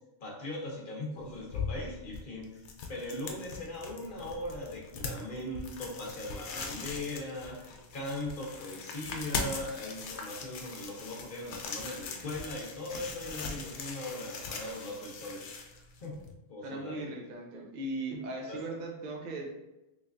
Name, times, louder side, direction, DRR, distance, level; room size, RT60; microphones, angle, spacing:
voice 1, 0.2-16.2 16.5-17.1 18.1-18.2 18.5-18.6, left 1 dB, 50° left, -2 dB, 0.9 m, -40 dB
sound 1, 1.2-16.3, left 4 dB, 80° left, 0.9 m, -41 dB
voice 2, 16.6-19.4, right 2 dB, 45° right, -1 dB, 0.6 m, -38 dB
3.3 x 3.2 x 2.5 m, 0.99 s
omnidirectional pair, 1.2 m